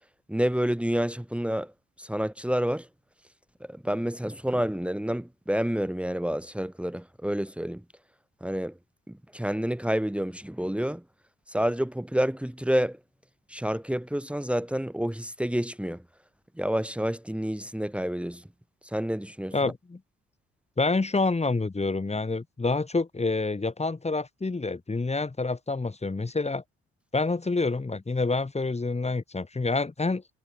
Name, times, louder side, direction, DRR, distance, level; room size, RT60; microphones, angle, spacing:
voice 1, 0.3-1.7 2.0-2.9 3.7-7.8 8.4-8.7 9.1-11.0 11.5-13.0 13.5-16.0 16.6-18.4 18.9-19.7, equal, 5° right, 3.1 m, -29 dB
voice 2, 19.5-20.0 20.8-26.6 27.1-30.2, left 3 dB, 20° left, 3.3 m, -27 dB
cardioid pair, 90°, 30 cm